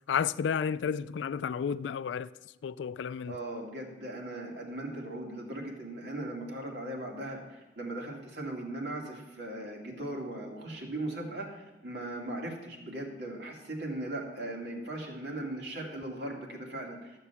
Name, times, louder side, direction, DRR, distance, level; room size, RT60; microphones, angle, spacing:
voice 1, 0.1-2.3 2.6-3.3, left 7 dB, 80° left, 0.3 m, -31 dB
voice 2, 3.3-17.2, right 1 dB, 65° right, 2.3 m, -38 dB
13.0 x 6.8 x 6.9 m
head